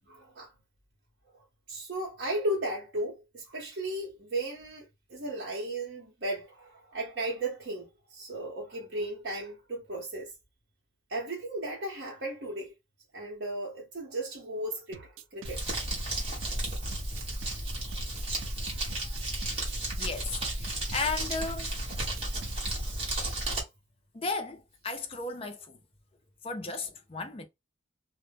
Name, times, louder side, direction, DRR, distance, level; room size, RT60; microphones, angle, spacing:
voice 1, 0.1-0.5 1.3-10.3 11.1-12.7 13.1-15.8 18.4-19.3, right 1 dB, 60° right, 0.8 m, -36 dB
sound 1, 14.9-22.9, right 7 dB, 85° right, 0.3 m, -47 dB
Crumpling crinkling, 15.4-23.6, right 1 dB, 30° right, 0.9 m, -33 dB
voice 2, 20.0-21.7 23.1-23.6 24.1-25.8 26.4-27.5, left 3 dB, 30° left, 0.4 m, -35 dB
2.1 x 2.0 x 3.2 m
head